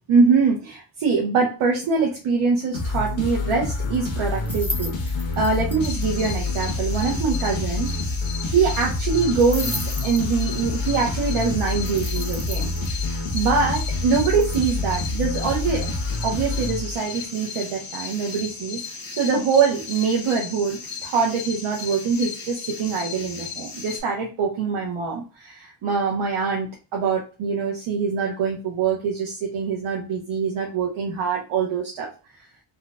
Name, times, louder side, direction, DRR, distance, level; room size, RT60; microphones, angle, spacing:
voice 1, 0.1-4.9 5.4-8.1 8.4-15.9 16.2-18.8 19.1-32.1, right 5 dB, 75° right, -1 dB, 0.9 m, -24 dB
sound 1, 2.7-17.3, left 2 dB, 70° left, 1.1 m, -27 dB
sound 2, 4.3-6.1 6.3-6.4 6.6-6.7 6.9-7.0 7.3-7.4 9.4-10.7 11.9-12.9 14.2-14.6, left 2 dB, 5° left, 0.5 m, -34 dB
sound 3, 5.8-24.0, left 6 dB, 45° left, 1.0 m, -36 dB
4.2 x 2.3 x 2.3 m, 0.34 s
wide cardioid pair, 155°, 50 cm